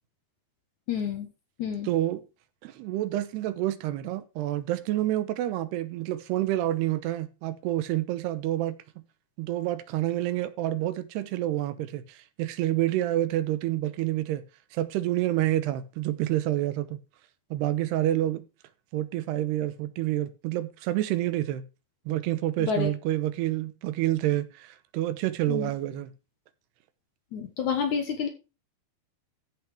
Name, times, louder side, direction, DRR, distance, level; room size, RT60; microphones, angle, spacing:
voice 1, 0.9-1.3 1.6-1.9 22.6-22.9 25.5-25.7 27.3-28.3, left 6 dB, 60° left, 2.2 m, -29 dB
voice 2, 1.9-2.2 2.6-8.8 9.4-14.4 14.7-17.0 17.5-18.4 18.9-21.6 22.1-26.1, right 14 dB, 80° right, 3.0 m, -28 dB
14.5 x 5.9 x 4.9 m
omnidirectional pair, 4.7 m